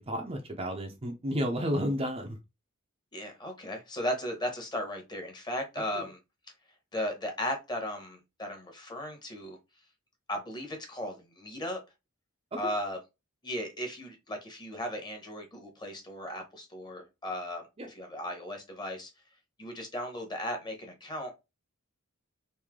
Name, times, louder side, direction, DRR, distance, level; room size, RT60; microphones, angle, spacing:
voice 1, 0.0-2.4 5.9-6.0 12.5-12.7 17.8-17.9, equal, 25° right, 0.6 m, -32 dB
voice 2, 3.1-6.2 6.9-9.6 10.3-11.8 12.6-13.0 13.4-17.6 17.9-19.1 19.6-21.3, equal, 20° left, 1.0 m, -36 dB
3.2 x 2.7 x 3.6 m
head